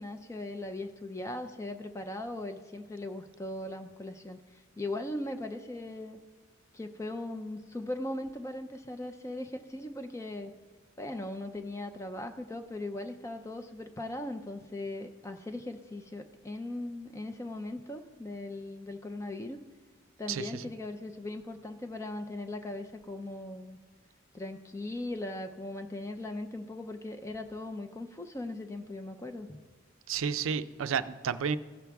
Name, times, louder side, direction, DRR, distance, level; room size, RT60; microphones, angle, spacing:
voice 1, 0.0-6.2 6.7-10.5 11.0-19.6 20.2-23.8 24.3-29.6, left 1 dB, 15° left, 7 dB, 0.4 m, -39 dB
voice 2, 20.3-20.6 30.1-31.6, right 6 dB, 75° right, 13 dB, 0.4 m, -31 dB
15.5 x 6.1 x 3.5 m, 1.4 s
head